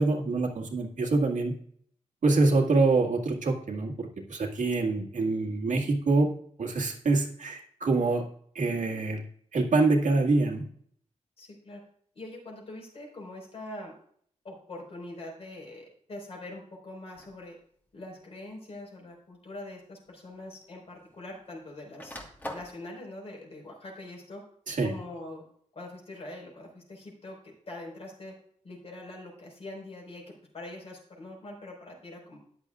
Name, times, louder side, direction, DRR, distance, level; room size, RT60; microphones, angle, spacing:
voice 1, 0.0-1.5 2.2-6.3 6.6-8.2 8.6-9.2 9.5-10.6 24.7-24.9, right 3 dB, 85° right, 0 dB, 2.0 m, -25 dB
voice 2, 11.4-11.8 12.1-13.9 14.4-17.6 17.9-22.2 22.5-24.4 24.8-25.4 25.7-28.3 28.6-32.4, left 2 dB, 55° left, 0 dB, 4.8 m, -43 dB
sound 1, 17.1-17.5 18.5-18.6 20.0-20.1 20.3-21.4 21.7-22.8, left 1 dB, 15° left, 1.5 m, -42 dB
13.5 x 10.5 x 2.5 m, 0.62 s
wide cardioid pair, 165°, 13 cm